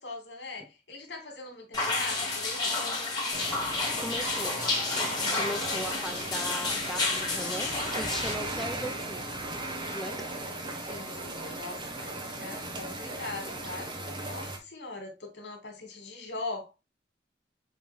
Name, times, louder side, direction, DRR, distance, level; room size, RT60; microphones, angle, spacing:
voice 1, 0.0-2.8 5.4-6.0 9.2-9.6 10.7-16.7, left 3 dB, 90° left, 2.8 m, -42 dB
sound 1, 1.7-8.3, left 3 dB, 25° left, 2.3 m, -30 dB
sound 2, 3.3-14.6, right 2 dB, 30° right, 1.5 m, -37 dB
voice 2, 4.0-4.6 5.3-9.3 9.9-10.1, equal, ahead, 0.7 m, -38 dB
7.5 x 3.9 x 3.5 m
head